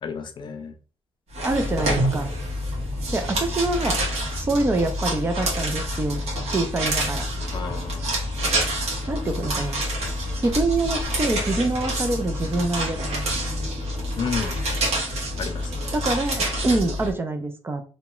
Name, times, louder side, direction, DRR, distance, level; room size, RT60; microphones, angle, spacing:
voice 1, 0.0-0.7 7.5-8.2 14.2-14.6 15.4-16.0, left 6 dB, 45° left, 7 dB, 0.4 m, -32 dB
sound 1, 1.3-17.1, equal, 70° right, 1.3 m, -27 dB
voice 2, 1.4-2.3 3.1-4.0 4.4-6.2 6.5-7.3 9.1-9.8 10.3-13.1 15.9-17.8, right 2 dB, 20° right, 6 dB, 0.4 m, -25 dB
3.0 x 2.3 x 2.9 m, 0.37 s
cardioid pair, 150°, 11 cm